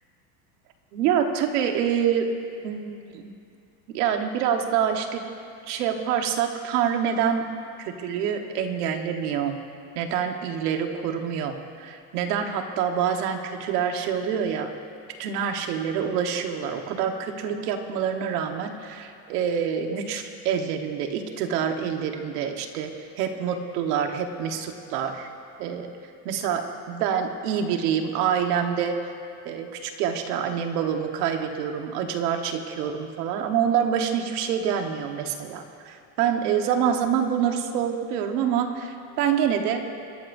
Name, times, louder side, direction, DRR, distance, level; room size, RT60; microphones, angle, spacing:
voice 1, 0.9-2.3 2.6-3.2 3.9-5.3 5.7-7.5 7.8-9.6 9.9-14.7 15.2-22.9 23.2-25.3 25.6-25.9 26.2-29.0 29.4-39.8, right 8 dB, 80° right, 5 dB, 1.5 m, -26 dB
27.0 x 13.0 x 2.7 m, 2.4 s
cardioid pair, 175°, 46 cm